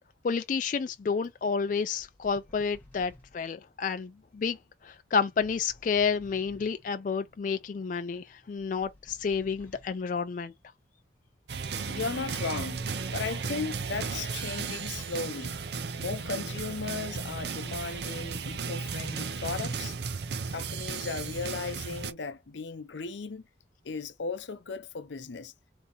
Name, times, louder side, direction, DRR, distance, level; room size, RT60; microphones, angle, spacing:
voice 1, 0.2-4.6 4.8-10.5, left 5 dB, 45° left, 0.3 m, -30 dB
sound 1, 2.0-3.5 5.4-6.9 8.6-10.1 11.7-12.9 14.3-15.3 17.2-18.5, left 1 dB, 10° left, 1.1 m, -55 dB
sound 2, 11.5-22.1, right 5 dB, 65° right, 0.6 m, -35 dB
voice 2, 11.8-15.6 16.0-19.9 20.5-23.5 23.8-25.5, left 4 dB, 80° left, 0.6 m, -36 dB
3.5 x 2.7 x 4.0 m
head